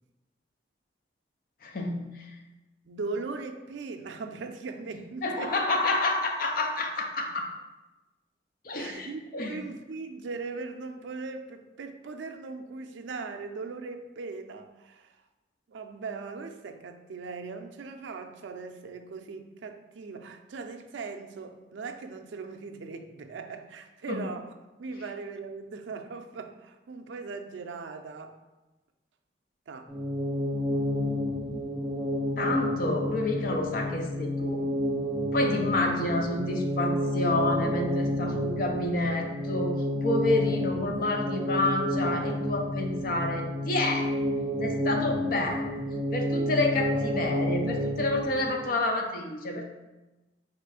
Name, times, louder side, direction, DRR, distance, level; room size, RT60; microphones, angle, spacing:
voice 1, 1.6-2.3 5.2-7.5 8.6-9.6 24.1-24.2 32.4-34.6 35.3-39.7 40.0-44.1 44.6-45.8 46.1-49.7, left 2 dB, 50° left, 0.5 m, -29 dB
voice 2, 2.9-5.6 8.7-15.2 15.7-24.5 24.8-28.4 29.7-29.9, right 4 dB, 80° right, 0.4 m, -39 dB
sound 1, 29.9-48.7, left 1 dB, 5° right, 0.6 m, -30 dB
4.3 x 2.4 x 4.7 m
head